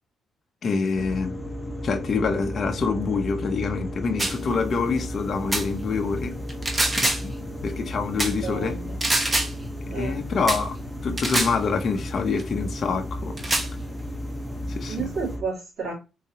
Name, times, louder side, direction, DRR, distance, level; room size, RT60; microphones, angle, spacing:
voice 1, 0.6-1.3 1.8-6.4 7.0-7.3 7.6-8.8 10.0-10.8 11.0-13.4 14.7-15.0, left 4 dB, 50° left, 0.7 m, -26 dB
sound 1, 0.9-15.4, equal, 5° left, 0.9 m, -34 dB
sound 2, 4.2-4.4 5.5-5.7 6.5-7.3 8.2-8.4 9.0-9.5 10.5-10.6 11.2-11.6 12.4-12.5 13.4-13.7, right 1 dB, 20° right, 0.9 m, -24 dB
voice 2, 8.4-9.0 9.9-10.2 14.9-15.9, right 5 dB, 55° right, 2.3 m, -31 dB
3.8 x 2.9 x 2.8 m
cardioid pair, 90°, 0 cm